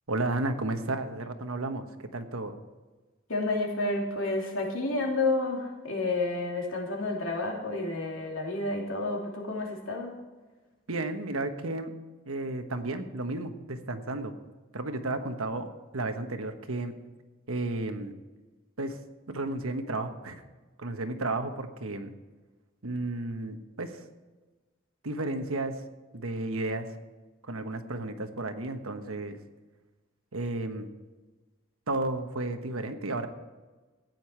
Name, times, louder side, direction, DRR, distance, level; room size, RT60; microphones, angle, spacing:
voice 1, 0.1-1.9 2.1-2.6 10.9-12.0 12.3-14.3 14.7-17.0 17.5-18.1 18.8-19.0 19.3-20.4 20.8-22.1 22.8-24.0 25.0-25.8 26.1-27.0 27.4-29.4 30.3-30.9 31.9-33.3, right 2 dB, 85° right, 7 dB, 1.2 m, -33 dB
voice 2, 3.3-10.2, left 2 dB, 75° left, 0 dB, 2.9 m, -30 dB
15.0 x 9.2 x 4.6 m, 1.3 s
head